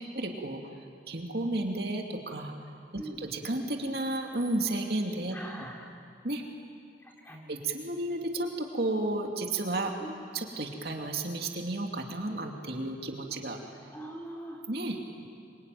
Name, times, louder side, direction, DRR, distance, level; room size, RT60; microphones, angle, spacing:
voice 1, 0.1-0.6 1.1-2.5 3.2-5.4 6.2-6.4 7.5-9.9 10.3-13.6 14.7-15.2, right 2 dB, 60° right, 2 dB, 2.6 m, -32 dB
voice 2, 5.3-5.9 7.0-7.5 10.0-10.1 13.9-14.6, right 1 dB, 10° left, -1 dB, 3.7 m, -42 dB
26.5 x 24.0 x 9.3 m, 2.3 s
head